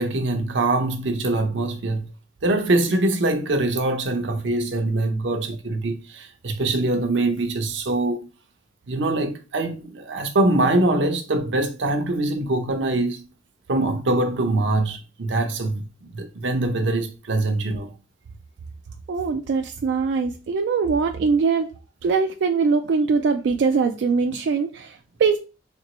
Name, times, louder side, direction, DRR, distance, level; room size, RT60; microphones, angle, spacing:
voice 1, 0.0-2.1 2.4-8.3 8.9-13.2 13.7-17.9, right 2 dB, 90° right, 0.7 m, -23 dB
voice 2, 19.1-21.7 22.0-25.4, right 5 dB, 65° right, 0.3 m, -22 dB
4.3 x 2.9 x 2.9 m
head